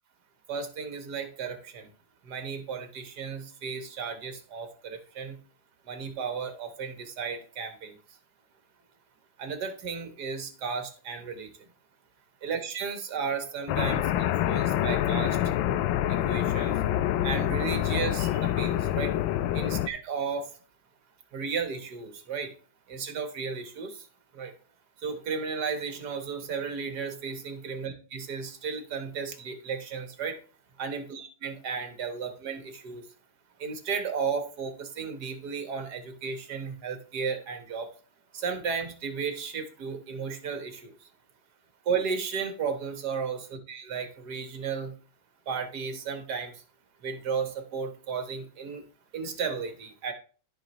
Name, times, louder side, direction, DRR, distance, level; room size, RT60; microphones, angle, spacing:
voice 1, 0.5-1.9 2.2-5.4 5.9-8.0 9.4-11.5 12.4-15.4 16.1-16.8 17.2-19.2 19.5-20.5 21.3-22.5 22.9-24.1 24.3-24.5 25.0-30.4 30.8-33.1 33.6-37.9 38.3-41.1 41.9-44.9 45.5-46.6 47.0-48.8 49.1-50.1, right 6 dB, 55° right, 1.8 m, -34 dB
sound 1, 13.7-19.9, left 12 dB, 80° left, 1.3 m, -26 dB
14.0 x 5.0 x 3.0 m
omnidirectional pair, 2.1 m